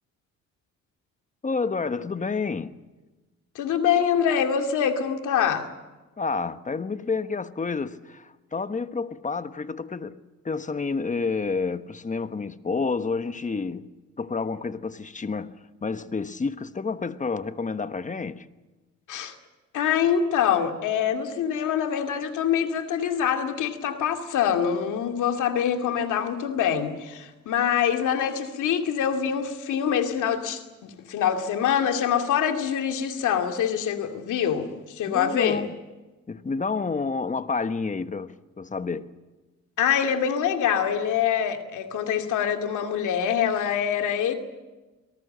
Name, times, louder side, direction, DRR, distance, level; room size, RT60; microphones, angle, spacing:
voice 1, 1.4-2.8 6.2-10.2 10.4-18.5 35.1-35.8 36.3-39.1, left 4 dB, 25° left, 1.2 m, -29 dB
voice 2, 3.5-5.7 19.1-19.3 19.7-35.7 39.8-44.3, left 8 dB, 80° left, 2.4 m, -25 dB
26.0 x 18.5 x 7.8 m
cardioid pair, 90°, 30 cm